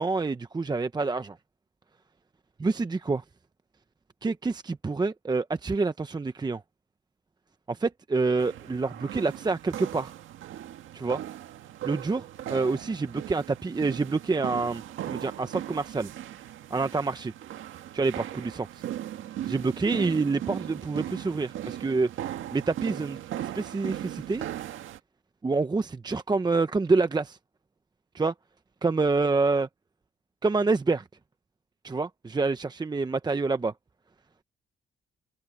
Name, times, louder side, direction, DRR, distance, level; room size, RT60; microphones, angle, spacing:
voice 1, 0.0-1.4 2.6-3.2 4.2-6.6 7.7-10.1 10.9-11.2 11.8-16.1 16.7-17.3 17.9-18.7 19.5-22.1 22.5-24.4 25.4-27.4 28.1-28.3 28.8-29.7 30.4-31.0 31.8-33.7, right 3 dB, 20° right, 0.8 m, -27 dB
sound 1, 8.4-25.0, right 12 dB, 80° right, 1.8 m, -38 dB
open air
cardioid pair, 90°, 20 cm